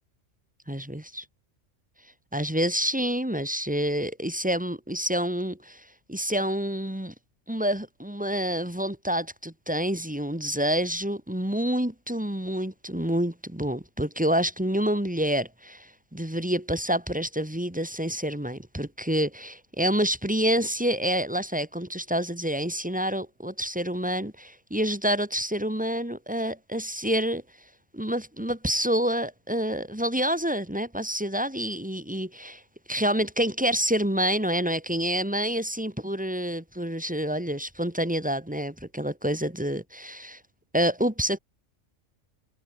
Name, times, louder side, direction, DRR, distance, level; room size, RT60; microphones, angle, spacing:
voice 1, 0.7-1.2 2.3-7.1 7.5-27.4 27.9-32.6 32.9-40.4 40.7-41.4, equal, 5° right, 2.0 m, -28 dB
omnidirectional pair, 1.4 m